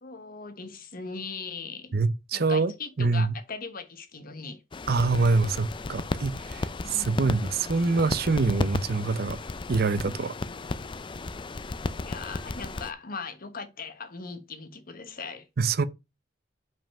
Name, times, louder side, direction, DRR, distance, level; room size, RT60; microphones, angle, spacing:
voice 1, 0.0-2.0 2.3-4.6 6.8-7.3 12.0-15.5, left 4 dB, 50° left, 1.1 m, -39 dB
voice 2, 1.9-2.7 3.0-3.3 4.9-9.4 9.7-10.3 15.6-15.8, right 4 dB, 55° right, 0.6 m, -25 dB
sound 1, 4.7-12.9, left 3 dB, 25° left, 0.4 m, -34 dB
5.6 x 5.2 x 5.4 m
head